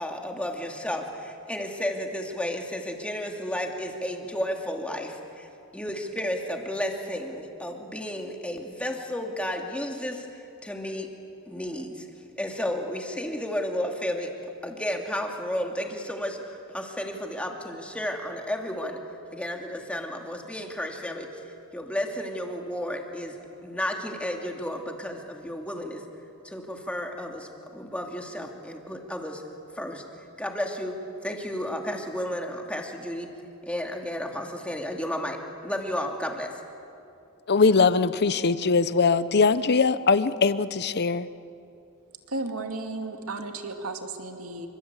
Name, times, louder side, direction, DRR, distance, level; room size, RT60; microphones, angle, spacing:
voice 1, 0.0-11.1 11.5-12.1 12.4-14.3 14.6-19.0 19.3-21.3 21.7-23.4 23.6-26.0 26.4-29.4 29.7-30.0 30.4-31.0 31.2-33.3 33.6-36.5, left 1 dB, 5° left, 2 dB, 2.6 m, -32 dB
voice 2, 37.5-41.3, left 4 dB, 50° left, 14 dB, 0.8 m, -21 dB
voice 3, 42.3-44.7, right 2 dB, 70° right, 5 dB, 2.4 m, -34 dB
27.5 x 25.5 x 8.3 m, 2.6 s
head